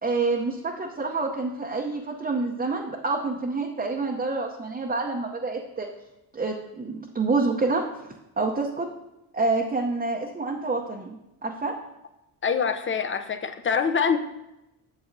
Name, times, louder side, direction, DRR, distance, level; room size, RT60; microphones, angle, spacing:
voice 1, 0.0-5.9 6.3-7.8 8.4-8.9 9.3-11.7, right 3 dB, 20° right, 0 dB, 0.7 m, -27 dB
voice 2, 12.4-14.2, left 6 dB, 30° left, 8 dB, 0.5 m, -24 dB
8.1 x 6.9 x 2.6 m, 0.94 s
cardioid pair, 70°, 44 cm